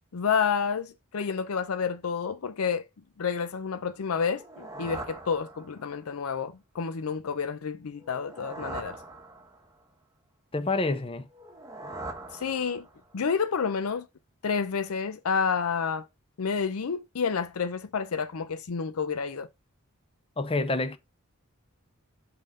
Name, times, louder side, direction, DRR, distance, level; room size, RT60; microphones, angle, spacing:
voice 1, 0.1-2.8 3.2-9.0 12.3-12.9 13.1-14.1 14.4-16.1 16.4-19.5, left 6 dB, 85° left, 0.6 m, -29 dB
sound 1, 4.2-6.1 8.0-9.8 11.3-13.1, right 2 dB, 15° right, 1.1 m, -42 dB
voice 2, 10.5-11.3 20.4-21.0, left 3 dB, 25° left, 0.6 m, -27 dB
5.6 x 3.8 x 5.2 m
head